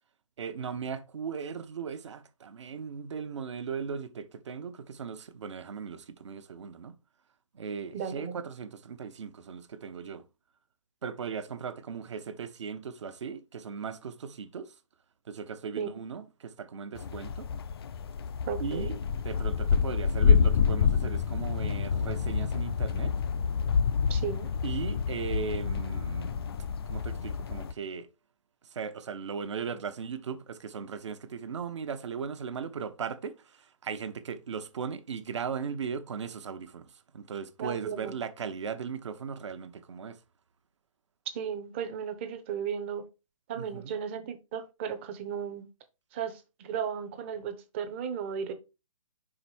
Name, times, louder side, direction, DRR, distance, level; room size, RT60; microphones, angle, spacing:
voice 1, 0.4-7.0 7.5-10.2 11.0-14.7 15.3-17.5 18.6-23.1 24.6-26.4 26.9-28.1 28.7-40.2 43.5-43.9, right 6 dB, 60° right, 0.9 m, -38 dB
voice 2, 7.9-8.4 15.8-15.9 18.5-19.0 24.1-24.5 37.6-38.2 41.3-43.0 43.5-45.7 46.1-48.5, right 7 dB, 20° right, 0.7 m, -35 dB
sound 1, 17.0-27.7, left 6 dB, 45° left, 0.4 m, -28 dB
5.3 x 4.9 x 4.3 m
hypercardioid pair, 160°, 17 cm